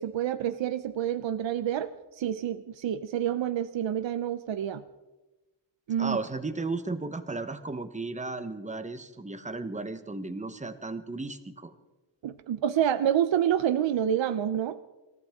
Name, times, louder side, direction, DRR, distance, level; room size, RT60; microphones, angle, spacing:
voice 1, 0.0-4.8 5.9-6.2 12.2-14.8, right 10 dB, 75° right, 11 dB, 0.7 m, -28 dB
voice 2, 6.0-11.7, right 3 dB, 15° right, 10 dB, 0.9 m, -35 dB
26.5 x 14.5 x 3.6 m, 1.1 s
wide cardioid pair, 170°, 45 cm